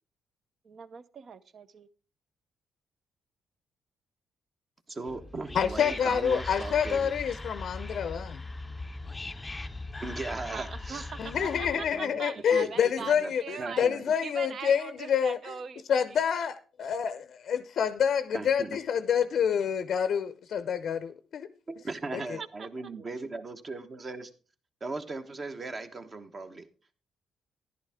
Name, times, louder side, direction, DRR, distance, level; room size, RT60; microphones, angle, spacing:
voice 1, 0.6-1.9 10.5-13.8 14.2-16.2 22.2-22.9, right 6 dB, 55° right, 0.7 m, -42 dB
voice 2, 4.9-7.1 10.0-12.2 12.5-12.7 13.0-13.3 13.6-14.1 18.3-18.8 21.7-24.3 24.8-26.7, right 3 dB, 35° right, 1.2 m, -38 dB
Whispering, 5.1-12.0, left 2 dB, 15° left, 0.6 m, -40 dB
voice 3, 5.5-8.4 11.2-15.5 15.9-21.5 22.1-22.4, left 7 dB, 65° left, 0.6 m, -28 dB
11.5 x 10.5 x 3.6 m
cardioid pair, 80°, 0 cm